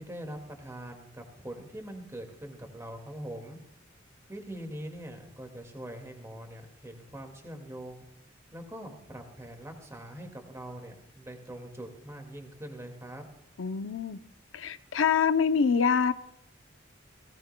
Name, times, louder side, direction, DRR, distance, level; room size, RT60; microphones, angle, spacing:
voice 1, 0.0-3.6 4.3-8.0 8.5-13.3, right 1 dB, 15° right, 4 dB, 2.0 m, -43 dB
voice 2, 13.6-14.2 14.5-16.1, left 6 dB, 80° left, 12 dB, 0.6 m, -25 dB
17.5 x 17.5 x 2.2 m, 0.79 s
head